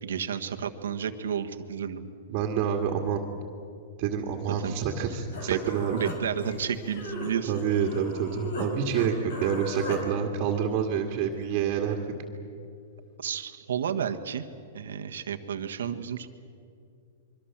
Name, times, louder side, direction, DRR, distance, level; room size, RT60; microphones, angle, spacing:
voice 1, 0.0-2.1 4.5-4.7 5.5-5.6 5.9-7.5 13.2-14.4 14.7-16.3, right 8 dB, 90° right, 6 dB, 1.6 m, -31 dB
voice 2, 2.3-3.3 4.0-6.0 7.5-9.1 9.4-12.0, right 8 dB, 40° right, 2 dB, 2.2 m, -27 dB
Human voice, 5.0-5.1 5.3-8.7 8.9-10.0, left 1 dB, 70° left, 5.4 m, -37 dB
25.5 x 23.5 x 7.5 m, 2.5 s
hypercardioid pair, 150°, 0 cm